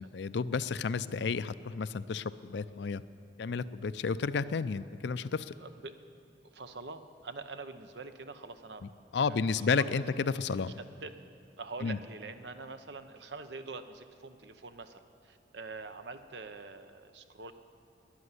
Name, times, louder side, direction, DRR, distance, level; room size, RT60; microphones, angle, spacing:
voice 1, 0.0-3.0 3.4-5.5 9.1-10.8 11.8-12.0, left 5 dB, 75° left, 15 dB, 0.4 m, -32 dB
voice 2, 5.6-6.0 6.5-8.9 9.1-9.9 10.8-11.1 11.6-17.5, right 3 dB, 70° right, 9 dB, 0.8 m, -45 dB
13.0 x 10.5 x 9.8 m, 2.5 s
head